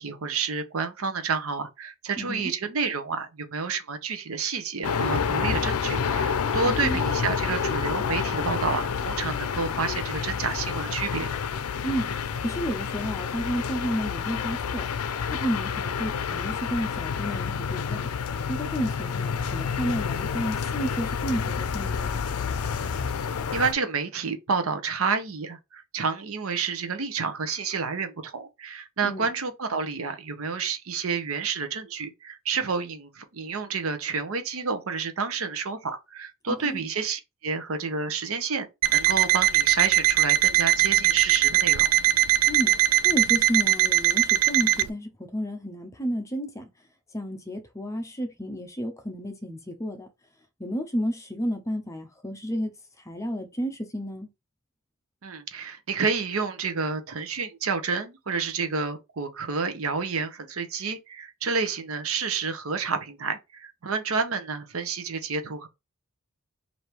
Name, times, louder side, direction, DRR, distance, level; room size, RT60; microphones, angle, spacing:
voice 1, 0.0-11.3 23.5-38.7 38.9-41.9 55.2-65.7, right 5 dB, 70° right, 0.8 m, -29 dB
sound 1, 4.8-23.7, left 6 dB, 85° left, 0.5 m, -29 dB
voice 2, 12.4-14.9 15.3-18.1 18.5-22.2 29.0-29.3 36.6-36.8 42.5-42.7 43.0-46.7 47.1-50.1 50.6-52.7 53.1-54.3, equal, 15° left, 0.6 m, -31 dB
Alarm, 38.8-44.9, right 14 dB, 90° right, 0.3 m, -21 dB
3.3 x 2.7 x 4.4 m
head